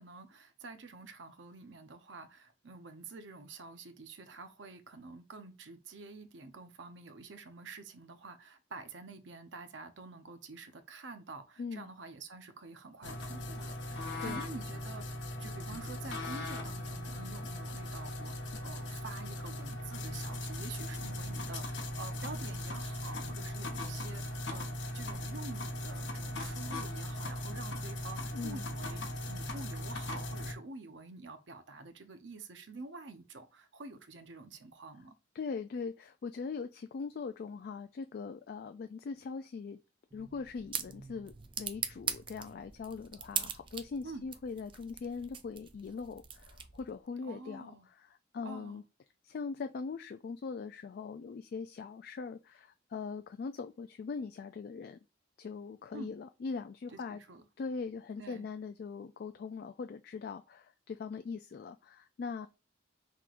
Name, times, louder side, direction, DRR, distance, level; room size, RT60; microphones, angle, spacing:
voice 1, 0.0-35.2 44.0-44.3 47.2-47.9 48.4-48.8 55.9-56.1 56.9-57.4 58.2-58.5, right 3 dB, 70° right, 0.7 m, -48 dB
sound 1, 13.0-30.5, left 1 dB, 70° left, 0.8 m, -39 dB
voice 2, 13.9-14.4 28.3-28.7 35.3-39.8 40.1-48.8 49.2-55.0 55.4-57.2 57.6-62.5, left 5 dB, 55° left, 0.3 m, -41 dB
sound 2, 40.1-47.0, right 8 dB, 25° right, 0.4 m, -41 dB
5.9 x 3.0 x 2.5 m
head